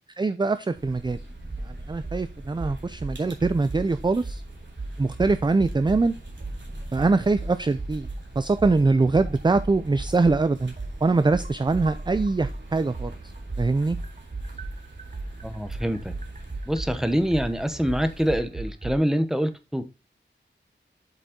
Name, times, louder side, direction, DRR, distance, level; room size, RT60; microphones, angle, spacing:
voice 1, 0.2-1.2 1.7-4.4 5.0-6.1 6.9-8.1 8.4-10.7 11.0-13.1 13.6-14.0, right 3 dB, 25° right, 12 dB, 0.4 m, -23 dB
sound 1, 0.7-18.4, right 1 dB, 70° right, 2.6 m, -41 dB
sound 2, 1.5-1.7 2.0-2.2 2.6-3.9 4.2-4.4 4.8-6.0 6.4-6.6 7.0-8.2 8.6-12.6 12.9-18.9, right 2 dB, 40° right, 0.8 m, -35 dB
voice 2, 15.4-16.1 16.7-19.8, equal, ahead, 8 dB, 0.9 m, -25 dB
8.0 x 5.2 x 3.7 m, 0.27 s
wide cardioid pair, 80°, 19 cm